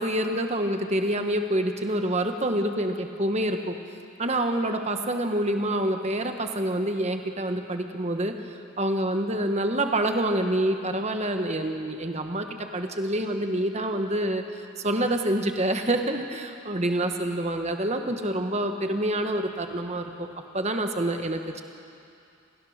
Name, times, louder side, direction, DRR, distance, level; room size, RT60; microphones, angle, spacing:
voice 1, 0.0-3.8 4.2-8.3 8.8-14.4 14.8-20.3 20.5-21.6, right 1 dB, 30° right, 5 dB, 1.3 m, -27 dB
29.5 x 15.5 x 6.5 m, 2.6 s
head